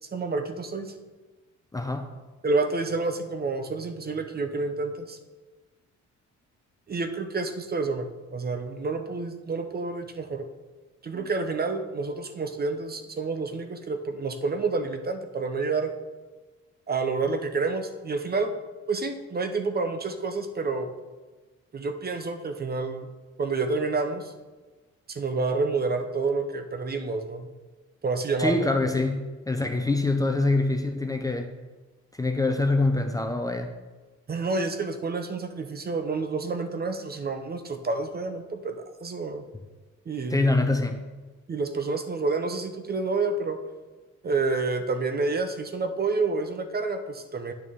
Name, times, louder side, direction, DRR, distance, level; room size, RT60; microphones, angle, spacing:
voice 1, 0.1-0.9 2.4-5.2 6.9-10.4 11.0-15.9 16.9-18.5 18.9-20.9 21.7-23.1 23.4-24.3 25.1-27.5 28.0-28.6 34.3-39.4 40.1-40.5 41.5-43.6 44.2-47.5, right 3 dB, 30° right, 7 dB, 0.7 m, -29 dB
voice 2, 1.7-2.1 11.1-11.3 28.4-31.5 32.2-33.7 40.3-41.1, left 2 dB, 10° left, 5 dB, 0.6 m, -25 dB
9.0 x 6.2 x 3.5 m, 1.3 s
cardioid pair, 90°, 30 cm